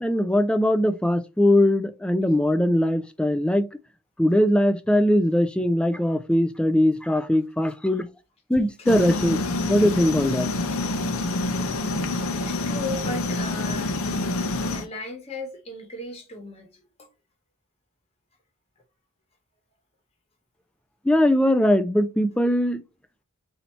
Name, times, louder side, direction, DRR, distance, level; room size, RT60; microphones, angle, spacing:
voice 1, 0.0-3.7 4.2-8.0 8.5-9.4 9.7-10.5 21.0-22.8, left 1 dB, 5° left, 0.3 m, -21 dB
sound 1, 8.9-14.9, left 2 dB, 85° left, 0.7 m, -27 dB
voice 2, 12.1-14.0 14.3-14.4 14.7-17.1, left 2 dB, 30° left, 1.2 m, -37 dB
4.2 x 2.8 x 4.3 m
head